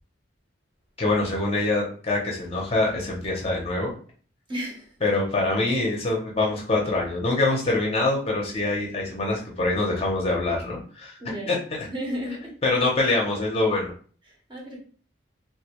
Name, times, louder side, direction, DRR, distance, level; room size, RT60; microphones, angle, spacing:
voice 1, 1.0-3.9 5.0-11.2 11.5-11.9 12.6-13.9, left 2 dB, 30° left, 0.6 m, -24 dB
voice 2, 4.5-5.0 11.2-12.6 14.3-14.8, equal, 25° right, 0.7 m, -34 dB
2.3 x 2.2 x 2.8 m
head